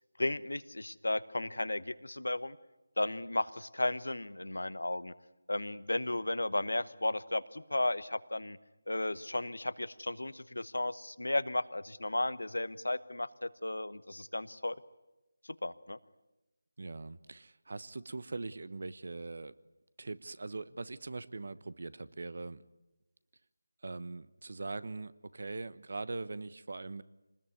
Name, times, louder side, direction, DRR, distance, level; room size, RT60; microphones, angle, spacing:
voice 1, 0.2-2.6 3.0-5.1 5.5-8.6 8.9-14.8 15.6-16.0, left 2 dB, 90° left, 15 dB, 1.1 m, -34 dB
voice 2, 16.8-19.5 20.0-22.6 23.8-27.0, right 3 dB, 60° right, 17 dB, 1.1 m, -41 dB
26.0 x 20.0 x 9.6 m, 1.0 s
figure-of-eight pair, 165°, 0 cm